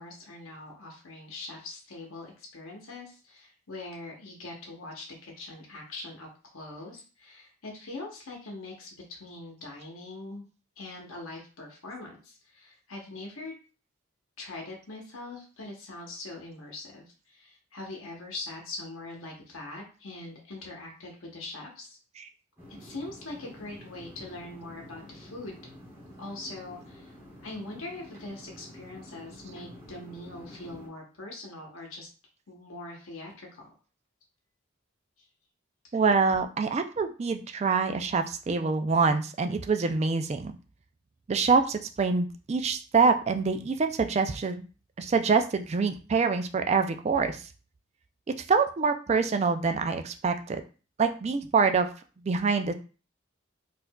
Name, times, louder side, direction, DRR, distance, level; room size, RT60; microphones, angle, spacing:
voice 1, 0.0-10.4 10.8-13.5 14.4-22.0 22.8-25.6 26.2-27.1 27.4-32.1 32.5-33.7, left 2 dB, 85° left, 0 dB, 0.9 m, -42 dB
sound 1, 22.6-30.9, equal, 10° right, 1.3 m, -49 dB
voice 2, 35.9-40.5 41.3-44.7 45.0-47.5 48.5-50.6 51.0-51.9 52.2-52.7, right 4 dB, 30° right, 7 dB, 0.3 m, -25 dB
4.5 x 2.5 x 2.2 m, 0.35 s
head